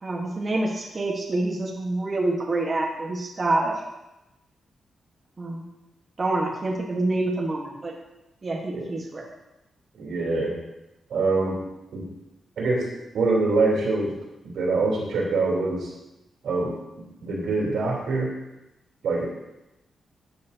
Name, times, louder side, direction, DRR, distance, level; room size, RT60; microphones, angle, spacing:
voice 1, 0.0-3.8 5.4-5.6 6.2-7.9 8.4-9.3, right 2 dB, 35° right, -2 dB, 1.3 m, -27 dB
voice 2, 10.0-10.6 11.1-11.6 11.9-12.1 12.6-14.1 14.4-15.9 16.4-18.3 19.0-19.3, right 3 dB, 85° right, -3 dB, 3.3 m, -25 dB
12.5 x 7.6 x 2.8 m, 0.95 s
cardioid pair, 110°, 0 cm